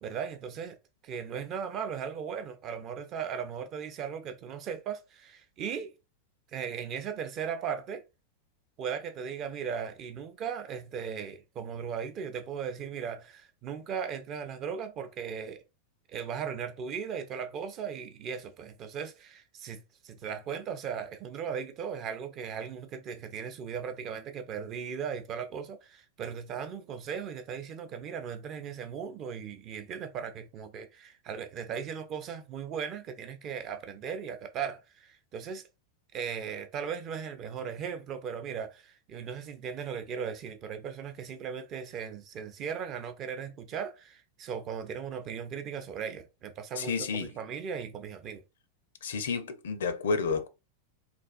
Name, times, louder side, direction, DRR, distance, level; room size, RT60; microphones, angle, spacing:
voice 1, 0.0-0.8 1.0-5.9 6.5-8.0 8.8-15.6 16.1-35.6 36.1-48.4, right 7 dB, 35° right, 0.5 m, -37 dB
voice 2, 46.7-47.3 49.0-50.5, left 4 dB, 60° left, 0.4 m, -30 dB
3.3 x 2.3 x 2.4 m
figure-of-eight pair, 90°, 0 cm